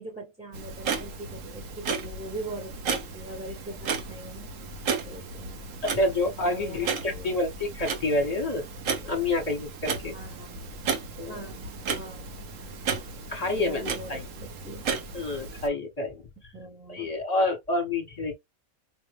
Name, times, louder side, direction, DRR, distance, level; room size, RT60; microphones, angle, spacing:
voice 1, 0.0-4.5 5.0-5.6 6.5-7.3 10.1-10.5 11.3-12.4 13.6-14.8 16.5-17.1, right 2 dB, 5° right, 1.0 m, -41 dB
Clock, 0.5-15.7, right 5 dB, 70° right, 1.3 m, -34 dB
voice 2, 5.8-8.6 9.0-10.1 11.2-11.5 13.3-14.3 15.1-16.5 16.9-18.3, left 2 dB, 30° left, 1.2 m, -28 dB
5.2 x 2.1 x 3.4 m
omnidirectional pair, 1.4 m